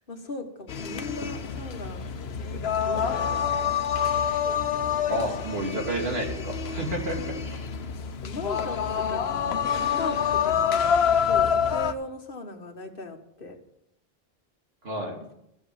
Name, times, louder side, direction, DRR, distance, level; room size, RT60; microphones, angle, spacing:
voice 1, 0.0-3.7 7.0-7.4 8.2-13.6 15.2-15.3, left 2 dB, 60° left, 5 dB, 1.7 m, -38 dB
sound 1, 0.7-11.9, left 7 dB, 85° left, 1.0 m, -27 dB
voice 2, 5.1-7.6 14.8-15.2, right 1 dB, 80° right, 0 dB, 2.8 m, -30 dB
14.0 x 8.0 x 7.7 m, 0.81 s
omnidirectional pair, 1.0 m